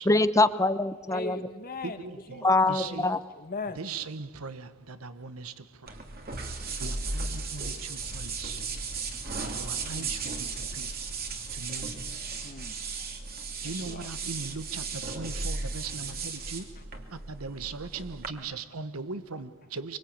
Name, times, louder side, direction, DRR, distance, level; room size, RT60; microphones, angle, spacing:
voice 1, 0.0-1.4 2.4-3.2, left 2 dB, 15° left, 0.9 m, -23 dB
voice 2, 1.1-3.0 3.4-3.8 9.8-10.2 12.4-13.1 13.6-14.1 16.8-16.9 17.8-18.6, left 3 dB, 45° left, 1.9 m, -41 dB
voice 3, 1.8-3.1 3.8-5.9 6.8-8.6 9.4-10.9 11.5-12.0 13.6-16.7 17.1-20.0, right 4 dB, 80° right, 1.1 m, -39 dB
sound 1, 5.9-18.3, right 4 dB, 45° right, 2.9 m, -35 dB
25.0 x 24.5 x 8.8 m
head